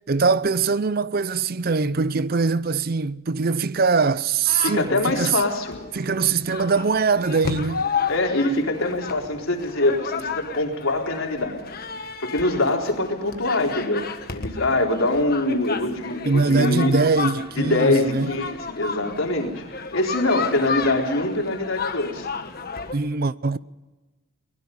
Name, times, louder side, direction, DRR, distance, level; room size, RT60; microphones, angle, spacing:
voice 1, 0.1-5.4 5.9-7.9 16.2-18.4 22.9-23.6, right 4 dB, 45° right, 0.6 m, -22 dB
sound 1, 4.5-22.9, left 5 dB, 45° left, 1.5 m, -32 dB
voice 2, 4.6-5.8 8.1-11.6 12.2-14.0 14.3-16.9 17.6-22.3, left 2 dB, 80° left, 4.1 m, -24 dB
23.5 x 20.5 x 5.4 m
head